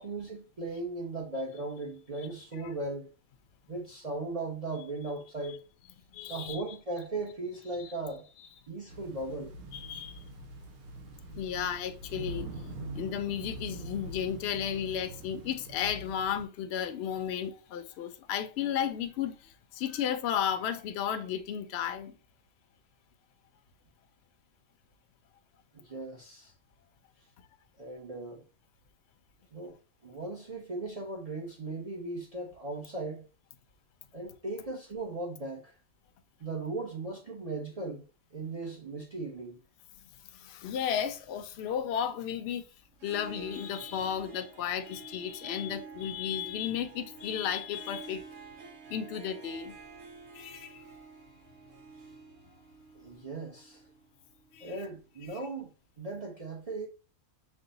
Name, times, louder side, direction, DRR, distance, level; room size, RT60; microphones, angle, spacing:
voice 1, 0.0-3.1 3.7-5.6 6.3-8.3 8.7-9.5 25.7-26.5 27.8-28.4 29.5-29.8 30.0-33.3 34.1-35.7 36.4-38.0 38.3-39.6 53.0-53.8 54.6-56.9, right 2 dB, 40° right, 0.5 m, -38 dB
voice 2, 6.1-6.6 7.8-7.9 9.7-10.2 11.3-12.5 12.9-22.2 40.3-42.7 43.0-48.2 48.9-49.7 50.3-50.8 54.5-54.8 55.3-55.4, left 9 dB, 60° left, 0.7 m, -34 dB
sound 1, 8.9-16.4, right 2 dB, 90° right, 1.3 m, -43 dB
Harp, 42.9-54.8, right 5 dB, 60° right, 1.4 m, -50 dB
5.3 x 2.1 x 3.9 m
omnidirectional pair, 1.5 m